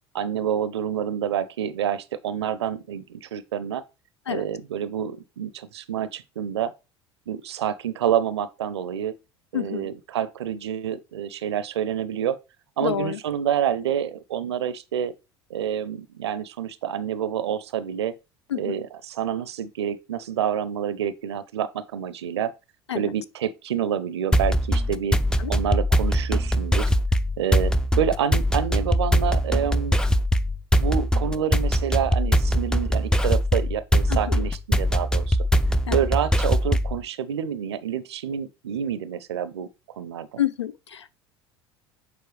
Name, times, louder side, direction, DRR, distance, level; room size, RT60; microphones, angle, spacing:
voice 1, 0.1-3.8 4.3-6.7 7.3-9.2 9.5-12.4 12.8-15.1 15.5-18.1 18.5-22.5 22.9-25.2 25.5-26.9 27.4-30.0 30.8-35.4 35.9-39.7 40.0-40.4, right 9 dB, 75° right, 0.6 m, -28 dB
voice 2, 9.5-9.9 12.8-13.2 18.5-18.8 22.9-23.1 25.4-25.5 34.1-34.5 35.9-36.0 40.4-41.1, left 10 dB, 85° left, 0.4 m, -28 dB
sound 1, 24.3-37.0, equal, 5° left, 0.4 m, -22 dB
6.9 x 4.6 x 3.2 m
figure-of-eight pair, 70°, 14 cm